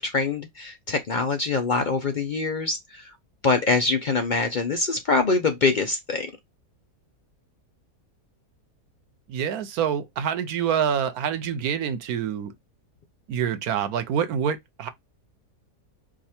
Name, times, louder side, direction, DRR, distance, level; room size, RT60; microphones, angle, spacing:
voice 1, 0.0-3.1 3.4-6.3, left 4 dB, 85° left, 0.4 m, -24 dB
voice 2, 9.3-12.5 13.3-14.9, right 8 dB, 70° right, 1.1 m, -26 dB
4.9 x 2.5 x 4.2 m
omnidirectional pair, 1.7 m